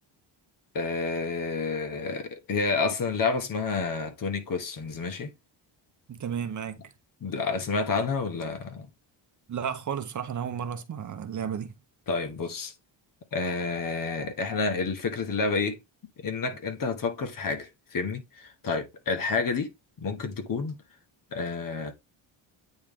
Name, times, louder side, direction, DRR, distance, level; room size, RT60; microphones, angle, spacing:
voice 1, 0.7-5.3 7.2-8.9 12.1-12.7 13.3-15.8 16.2-19.7 20.0-20.8 21.3-21.9, left 4 dB, 45° left, 1.2 m, -29 dB
voice 2, 6.1-6.9 9.5-11.7, right 8 dB, 40° right, 0.8 m, -33 dB
8.8 x 3.2 x 3.6 m
cardioid pair, 135°, 46 cm